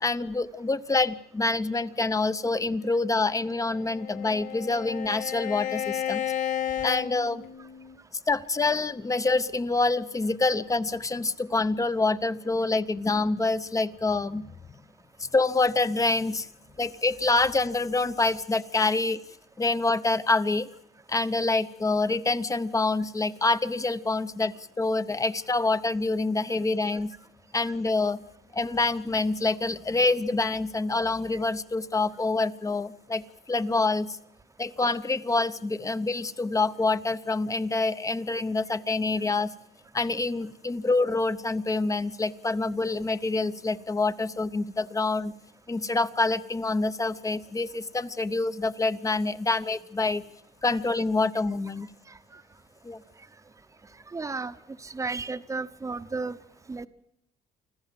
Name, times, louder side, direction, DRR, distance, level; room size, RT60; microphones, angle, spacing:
voice 1, 0.0-6.2 6.8-7.4 8.3-14.5 15.2-16.5 16.8-19.2 19.6-20.7 21.1-27.1 27.5-28.2 28.5-33.2 33.5-34.2 34.6-39.5 39.9-45.3 45.7-50.2 50.6-51.9 52.8-53.0, left 3 dB, 20° left, 13 dB, 0.8 m, -26 dB
Bowed string instrument, 3.5-8.0, left 10 dB, 50° left, 1.0 m, -33 dB
voice 2, 54.1-54.5 54.8-56.4 56.7-56.9, right 4 dB, 20° right, 11 dB, 0.9 m, -33 dB
25.5 x 14.5 x 7.6 m, 0.78 s
cardioid pair, 110°, 17 cm